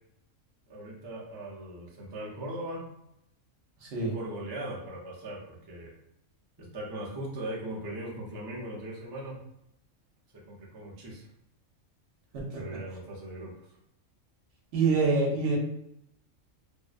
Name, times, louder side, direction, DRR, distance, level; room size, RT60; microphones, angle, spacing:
voice 1, 0.7-2.9 3.9-5.9 6.6-9.4 10.3-11.3 12.6-13.6, right 1 dB, 40° right, -4 dB, 0.3 m, -39 dB
voice 2, 3.8-4.1 12.3-12.7 14.7-15.6, right 4 dB, 65° right, -1 dB, 0.9 m, -26 dB
2.6 x 2.1 x 2.4 m, 0.79 s
omnidirectional pair, 1.4 m